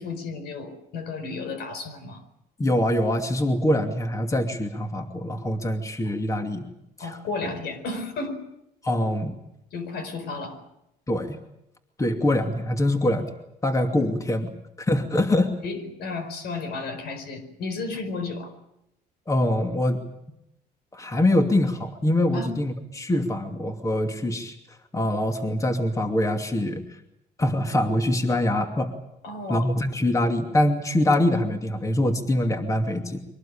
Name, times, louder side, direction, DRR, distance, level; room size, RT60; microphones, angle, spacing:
voice 1, 0.0-2.2 7.0-8.4 9.7-10.6 15.6-18.5 22.3-22.5 29.2-29.7, left 3 dB, 75° left, 10 dB, 4.7 m, -33 dB
voice 2, 2.6-6.6 7.0-7.2 7.4-7.5 8.8-9.4 11.1-11.4 12.0-13.3 13.6-14.5 14.8-15.5 19.3-20.0 20.9-24.5 24.9-26.8 27.4-28.9 29.5-33.2, left 1 dB, 20° left, 5 dB, 2.6 m, -24 dB
24.0 x 18.5 x 8.8 m, 0.84 s
cardioid pair, 110°, 17 cm